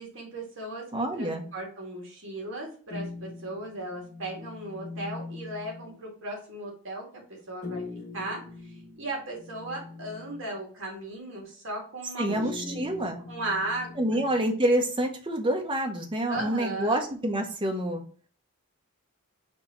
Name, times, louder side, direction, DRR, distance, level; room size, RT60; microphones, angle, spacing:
voice 1, 0.0-7.2 7.5-7.8 8.1-13.0 13.3-14.2 16.3-17.0, right 2 dB, 60° right, -2 dB, 1.9 m, -36 dB
voice 2, 0.9-1.5 12.2-13.2 14.0-18.0, right 1 dB, 20° right, 3 dB, 0.8 m, -27 dB
sound 1, 2.9-6.0 7.6-10.6 12.3-14.5, left 3 dB, 35° left, 0.9 m, -42 dB
4.5 x 2.8 x 4.2 m, 0.43 s
head